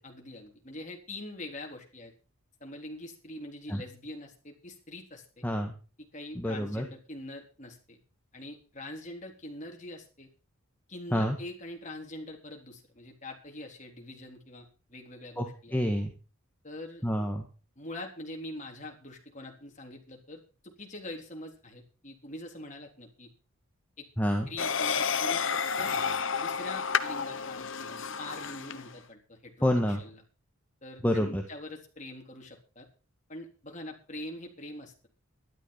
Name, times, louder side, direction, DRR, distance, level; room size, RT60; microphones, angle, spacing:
voice 1, 0.0-2.1 2.6-5.5 6.1-8.0 8.3-10.3 10.9-15.8 16.6-17.0 17.8-23.3 24.0-24.1 24.5-25.9 26.4-30.2 30.8-32.9 33.3-35.1, left 1 dB, 35° left, 1 dB, 3.8 m, -44 dB
voice 2, 5.4-5.7 6.3-6.8 11.1-11.4 15.4-16.1 17.0-17.4 24.2-24.5 29.6-30.0 31.0-31.4, equal, 10° left, 3 dB, 1.6 m, -28 dB
sound 1, 24.6-28.9, left 6 dB, 60° left, 1.1 m, -31 dB
12.5 x 12.5 x 5.6 m, 0.36 s
head